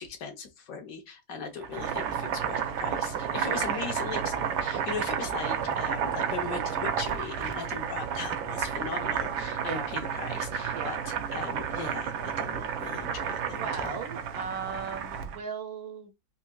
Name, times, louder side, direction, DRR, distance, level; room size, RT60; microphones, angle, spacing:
voice 1, 0.0-14.0, left 6 dB, 55° left, 1.0 m, -39 dB
Boiling, 1.6-15.4, right 8 dB, 90° right, 1.4 m, -31 dB
voice 2, 3.5-3.9 9.6-9.9 10.7-11.0 13.6-16.1, right 5 dB, 70° right, 0.9 m, -37 dB
4.6 x 2.7 x 2.2 m
omnidirectional pair, 2.1 m